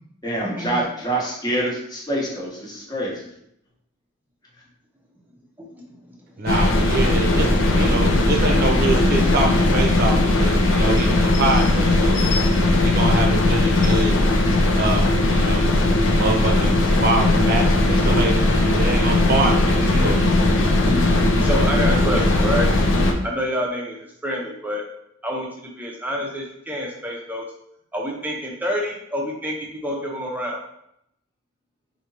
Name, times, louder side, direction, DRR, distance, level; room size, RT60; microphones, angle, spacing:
voice 1, 0.2-3.3, right 1 dB, 20° left, -3 dB, 1.0 m, -26 dB
voice 2, 6.4-14.1 14.7-15.7 16.1-20.6, right 2 dB, 50° right, 1 dB, 0.7 m, -25 dB
sound 1, 6.5-23.1, left 2 dB, 65° left, 0.6 m, -18 dB
voice 3, 21.4-22.7 23.2-24.0 24.2-24.8 25.2-27.4 27.9-30.6, equal, 10° right, -2 dB, 0.7 m, -27 dB
4.9 x 2.8 x 2.9 m, 0.75 s
head